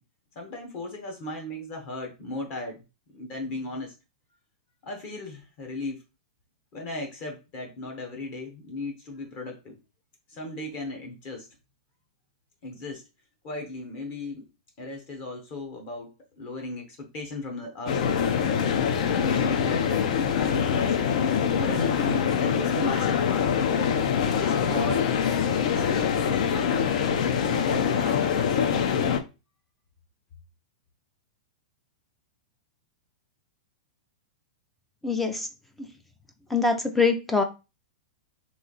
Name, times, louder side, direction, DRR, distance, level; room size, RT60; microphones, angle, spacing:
voice 1, 0.3-2.8 3.1-3.9 4.8-6.0 6.7-9.8 10.3-11.5 12.6-13.0 13.4-14.4 14.8-18.2 19.1-23.5 24.4-25.0 25.6-26.8 27.5-28.9, left 2 dB, 35° left, 2 dB, 0.9 m, -36 dB
sound 1, 17.9-29.2, left 7 dB, 55° left, 0.5 m, -24 dB
voice 2, 35.0-35.5 36.5-37.4, left 4 dB, 5° left, 6 dB, 0.4 m, -23 dB
3.1 x 2.6 x 3.9 m, 0.28 s
supercardioid pair, 165°, 4 cm